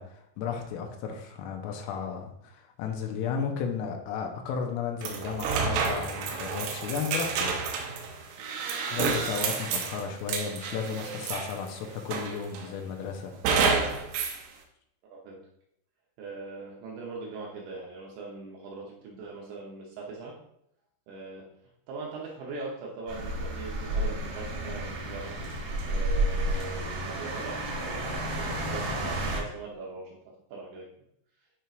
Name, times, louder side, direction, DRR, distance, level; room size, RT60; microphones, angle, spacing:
voice 1, 0.0-7.6 8.9-13.3, left 6 dB, 85° left, 3 dB, 3.4 m, -34 dB
sound 1, 5.0-11.7 12.1-12.7 13.5-14.4, right 5 dB, 90° right, 3.7 m, -29 dB
voice 2, 16.2-20.3 21.1-21.4 21.9-25.4 25.9-30.2 30.5-30.9, right 3 dB, 75° right, -3 dB, 2.8 m, -41 dB
sound 2, 23.1-29.4, right 1 dB, 60° right, 2.5 m, -31 dB
11.5 x 4.5 x 2.5 m, 0.75 s
omnidirectional pair, 6.0 m